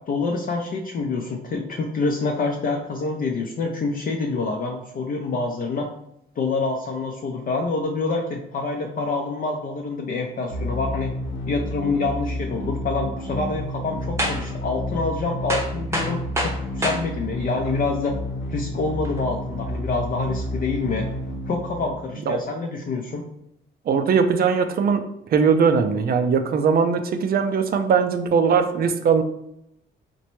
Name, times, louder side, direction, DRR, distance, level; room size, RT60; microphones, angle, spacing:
voice 1, 0.0-5.9 6.4-11.1 11.5-18.1 18.5-21.1 21.5-23.3, left 3 dB, 45° left, 1 dB, 0.5 m, -26 dB
sound 1, 10.5-22.4, equal, 75° left, 0.9 m, -31 dB
sound 2, 14.2-14.5 14.9-15.0 15.5-17.0 17.7-17.8 19.0-19.2, equal, 15° right, 0.7 m, -26 dB
voice 2, 23.9-25.0 25.3-29.2, right 6 dB, 50° right, 7 dB, 0.4 m, -20 dB
4.0 x 2.2 x 2.9 m, 0.78 s
cardioid pair, 90°, 20 cm